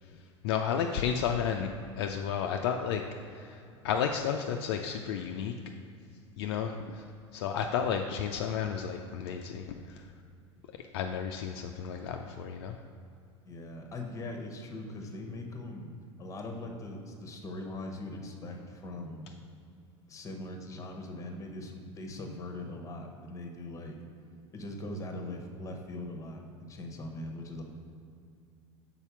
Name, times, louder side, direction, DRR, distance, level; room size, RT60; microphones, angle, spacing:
voice 1, 0.0-5.5 6.4-7.1 7.3-10.1 10.7-12.8, left 7 dB, 55° left, 4 dB, 0.4 m, -32 dB
voice 2, 13.4-15.9 16.2-19.3 20.1-24.0 24.5-27.6, left 2 dB, 20° left, 3 dB, 0.9 m, -41 dB
5.6 x 4.2 x 5.6 m, 2.5 s
figure-of-eight pair, 75°, 15 cm